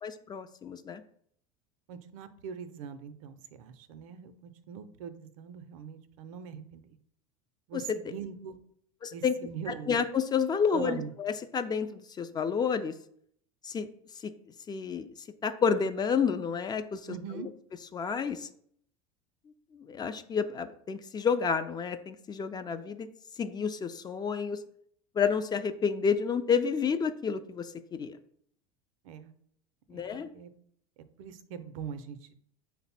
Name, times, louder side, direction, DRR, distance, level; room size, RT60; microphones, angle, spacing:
voice 1, 0.0-1.0 7.7-7.8 9.0-9.3 9.9-12.9 13.6-13.9 14.2-14.3 14.7-15.1 15.4-17.0 17.9-18.5 19.7-23.1 23.4-24.6 25.2-28.1 29.9-30.3, left 6 dB, 25° left, 9 dB, 0.3 m, -30 dB
voice 2, 1.9-7.0 7.7-8.6 9.1-9.9 10.7-11.1 17.1-17.5 29.0-29.3 29.9-30.5 31.2-32.3, right 7 dB, 70° right, 12 dB, 0.5 m, -42 dB
5.2 x 2.0 x 4.2 m, 0.65 s
hypercardioid pair, 90°, 18 cm